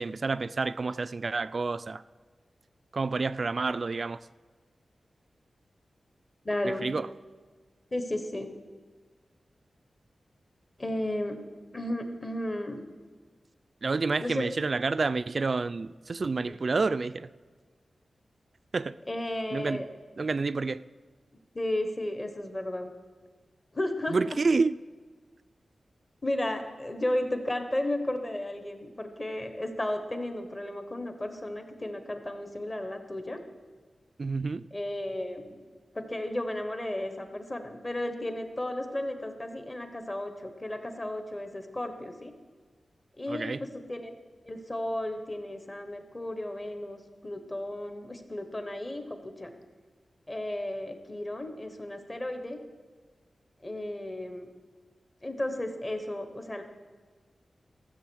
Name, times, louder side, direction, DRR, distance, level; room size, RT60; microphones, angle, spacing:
voice 1, 0.0-2.0 2.9-4.2 6.6-7.1 13.8-17.3 18.7-18.9 19.5-19.8 20.2-20.8 24.1-24.8 34.2-34.7 43.3-43.6, right 4 dB, 45° right, 0.3 m, -29 dB
voice 2, 6.4-6.9 7.9-8.5 10.8-11.4 11.7-12.8 14.2-14.5 16.4-16.5 19.1-19.9 21.5-22.9 23.7-24.2 26.2-33.4 34.7-35.6 35.9-42.3 43.2-44.1 44.4-49.5 50.3-52.6 53.6-54.5 55.2-56.6, left 1 dB, 25° left, 1.1 m, -34 dB
14.5 x 7.6 x 6.3 m
wide cardioid pair, 130°, 0 cm